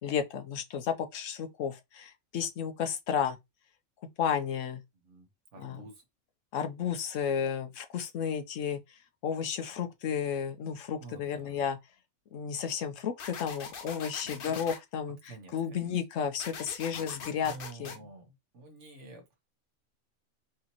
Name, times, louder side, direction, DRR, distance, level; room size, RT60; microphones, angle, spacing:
voice 1, 0.0-3.4 4.2-4.8 5.6-5.8 6.5-8.8 9.2-11.8 12.3-17.5 17.8-18.0, left 7 dB, 75° left, 1.1 m, -32 dB
voice 2, 5.1-5.9 11.0-11.6 14.2-14.5 15.2-15.9 16.9-18.2 18.5-19.4, right 3 dB, 65° right, 1.4 m, -49 dB
sound 1, 13.2-14.8 16.4-18.0, left 6 dB, 50° left, 0.8 m, -42 dB
4.9 x 2.9 x 2.9 m
omnidirectional pair, 1.3 m